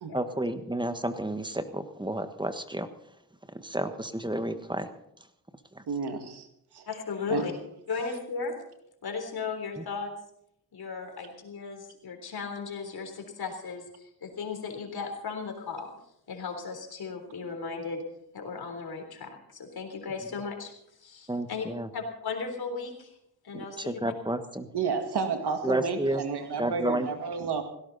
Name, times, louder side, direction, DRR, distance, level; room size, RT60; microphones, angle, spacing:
voice 1, 0.1-2.9 3.6-4.9 5.7-5.8 21.3-21.9 23.5-24.7 25.6-26.2 26.6-27.1, right 1 dB, 10° right, 9 dB, 1.4 m, -31 dB
voice 2, 5.9-6.5 6.7-6.8 7.3-7.4 24.7-27.6, right 5 dB, 85° right, 6 dB, 2.2 m, -31 dB
voice 3, 6.9-7.5 7.9-8.6 9.0-10.1 10.7-15.9 16.3-18.0 18.3-20.7 21.0-21.7 21.9-23.1 23.4-24.0, left 5 dB, 70° left, 4 dB, 3.8 m, -36 dB
18.0 x 17.0 x 4.1 m, 0.76 s
cardioid pair, 70°, 39 cm